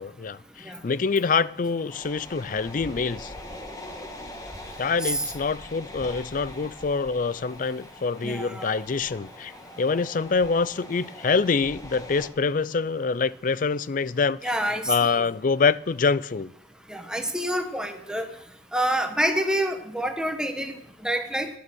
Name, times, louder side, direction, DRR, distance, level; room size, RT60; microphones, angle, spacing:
voice 1, 0.0-3.3 4.8-9.5 9.8-14.5 14.9-16.5, left 4 dB, 45° left, 0.4 m, -25 dB
sound 1, 1.9-12.3, left 1 dB, 20° left, 1.6 m, -42 dB
voice 2, 8.2-8.7 14.4-15.2 16.9-18.3 18.7-20.7 21.0-21.5, right 1 dB, 5° right, 1.1 m, -27 dB
11.5 x 11.5 x 6.3 m
head